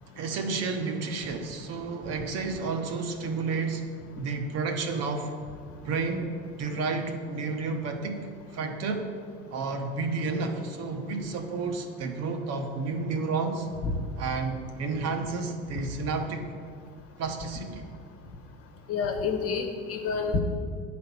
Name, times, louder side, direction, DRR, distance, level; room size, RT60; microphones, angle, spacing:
voice 1, 0.2-3.8 4.2-5.3 5.8-9.1 9.5-13.7 14.2-16.5 17.2-17.8, right 4 dB, 50° right, 4 dB, 1.0 m, -31 dB
voice 2, 18.9-20.4, left 5 dB, 45° left, 4 dB, 1.2 m, -28 dB
9.4 x 4.3 x 6.9 m, 2.2 s
supercardioid pair, 120°, 33 cm